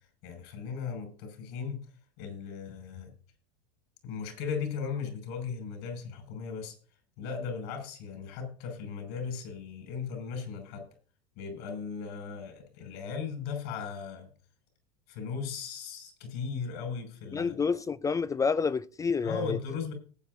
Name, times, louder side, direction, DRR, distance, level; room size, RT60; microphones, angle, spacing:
voice 1, 0.2-1.9 2.2-3.1 4.0-6.7 7.2-10.9 11.4-14.3 15.1-17.6 19.2-19.9, left 6 dB, 65° left, 6.1 m, -37 dB
voice 2, 17.3-19.6, left 5 dB, 15° left, 0.4 m, -29 dB
18.5 x 8.9 x 2.7 m
hypercardioid pair, 95°, 20 cm